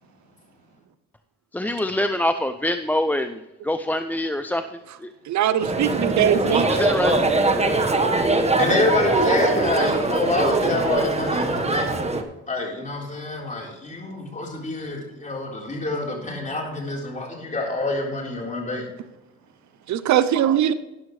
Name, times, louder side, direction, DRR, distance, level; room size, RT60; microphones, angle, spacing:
voice 1, 1.5-3.4 3.6-4.6 5.0-5.1 6.2-7.2, left 1 dB, 5° left, 9 dB, 0.4 m, -25 dB
voice 2, 5.3-6.8 19.9-20.7, right 10 dB, 65° right, 14 dB, 0.6 m, -21 dB
sound 1, 5.6-12.2, right 2 dB, 20° right, 1.3 m, -22 dB
voice 3, 8.6-11.9 12.5-18.8, left 2 dB, 25° left, -2 dB, 3.8 m, -26 dB
13.0 x 10.5 x 3.2 m, 1.0 s
cardioid pair, 90°, 30 cm